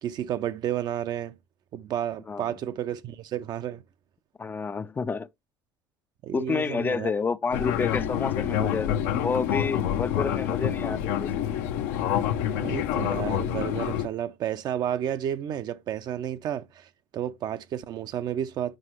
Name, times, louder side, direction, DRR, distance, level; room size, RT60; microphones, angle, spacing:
voice 1, 0.0-1.3 1.7-3.8 6.2-7.1 12.6-18.8, right 10 dB, 55° right, 0.6 m, -31 dB
voice 2, 4.4-5.3 6.3-11.5, left 5 dB, 25° left, 0.4 m, -29 dB
Fixed-wing aircraft airplane, 7.5-14.1, left 10 dB, 75° left, 0.8 m, -27 dB
7.7 x 5.4 x 3.0 m
hypercardioid pair, 75°, 9 cm